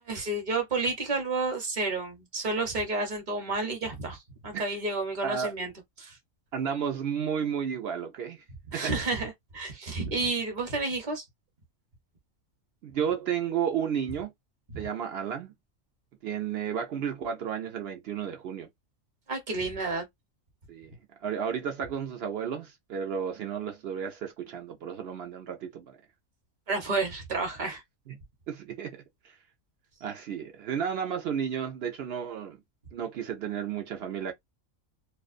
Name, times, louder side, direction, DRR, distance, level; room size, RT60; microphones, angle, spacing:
voice 1, 0.1-5.7 6.0-6.2 8.7-11.2 19.3-20.1 26.7-27.8, right 3 dB, 40° right, 0.9 m, -30 dB
voice 2, 6.5-8.4 8.7-8.9 12.8-14.3 14.8-15.5 16.2-18.7 20.7-26.0 28.1-28.2 28.5-29.4 30.0-32.6 32.9-34.3, right 8 dB, 65° right, 0.7 m, -32 dB
2.4 x 2.2 x 2.4 m
omnidirectional pair, 1.4 m